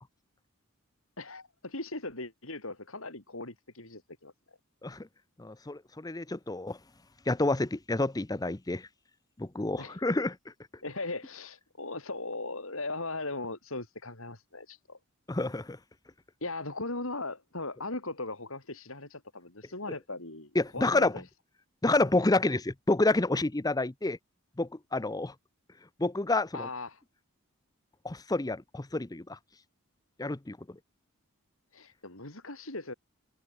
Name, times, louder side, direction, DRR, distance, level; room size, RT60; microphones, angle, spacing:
voice 1, 1.2-4.3 9.8-10.0 10.8-15.0 16.4-21.2 26.5-27.0 31.7-32.9, left 2 dB, 65° left, 5.9 m, -38 dB
voice 2, 5.4-6.8 7.3-8.9 9.4-10.4 15.3-15.8 20.5-21.1 21.8-24.2 24.6-25.3 26.0-26.7 28.0-29.4 30.2-30.6, left 2 dB, 15° left, 0.7 m, -29 dB
head